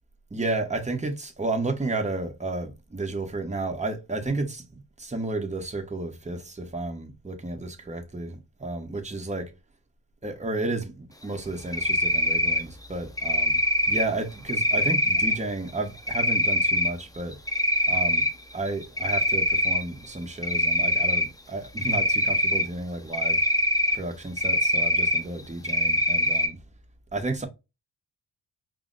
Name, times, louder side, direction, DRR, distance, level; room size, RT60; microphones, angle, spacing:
voice 1, 0.3-9.5 10.2-13.6 13.9-17.4 17.9-18.3 18.5-23.4 23.9-26.6 27.1-27.5, right 2 dB, 15° right, 0.9 m, -32 dB
Cricket, 11.7-12.6 13.2-14.0 14.5-15.3 16.1-16.9 17.3-18.3 18.7-19.8 20.4-21.2 21.8-22.6 23.1-24.0 24.4-25.2 25.6-26.5, equal, 10° left, 0.6 m, -23 dB
4.9 x 2.0 x 3.8 m
wide cardioid pair, 90°, 42 cm